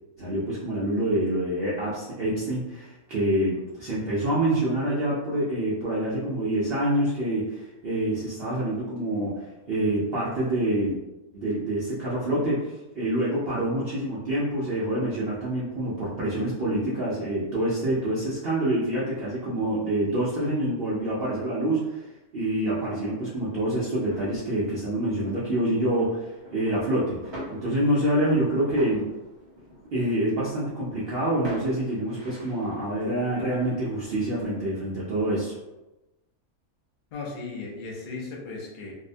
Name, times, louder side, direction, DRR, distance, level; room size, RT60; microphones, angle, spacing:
voice 1, 0.2-9.4 9.7-11.0 11.3-22.0 22.3-29.1 29.9-35.6, right 1 dB, 60° right, -8 dB, 0.6 m, -26 dB
sound 1, 23.5-34.6, equal, 40° right, 1.1 m, -44 dB
voice 2, 37.1-38.9, left 3 dB, 70° left, -3 dB, 0.4 m, -36 dB
2.7 x 2.1 x 2.5 m, 1.0 s
omnidirectional pair, 1.6 m